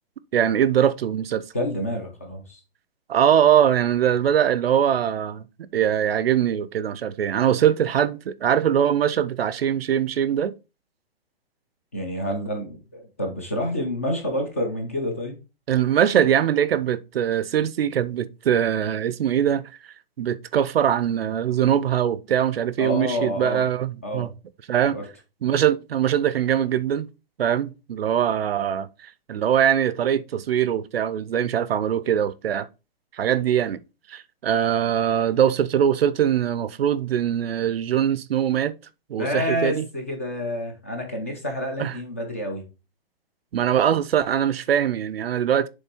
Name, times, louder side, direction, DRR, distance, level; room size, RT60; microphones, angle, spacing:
voice 1, 0.3-1.4 3.1-5.4 5.7-10.5 15.7-19.7 20.2-24.3 24.7-25.0 25.4-27.1 27.4-28.9 29.3-32.7 33.2-33.8 34.1-38.7 39.1-39.8 41.8-41.9 43.5-45.7, right 9 dB, 75° right, 0.6 m, -22 dB
voice 2, 1.5-2.6 11.9-15.4 22.8-23.7 24.0-24.3 24.9-25.0 39.2-42.6, left 1 dB, 15° left, 0.5 m, -28 dB
7.2 x 3.3 x 4.3 m
hypercardioid pair, 180°, 30 cm